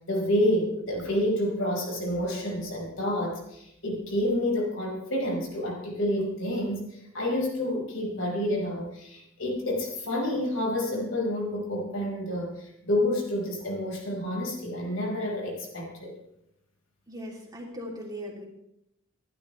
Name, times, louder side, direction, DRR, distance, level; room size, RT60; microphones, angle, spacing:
voice 1, 0.1-16.1, left 1 dB, 70° left, -1 dB, 5.3 m, -29 dB
voice 2, 17.1-18.5, equal, 20° right, -2 dB, 3.2 m, -39 dB
27.0 x 12.0 x 3.4 m, 0.80 s
head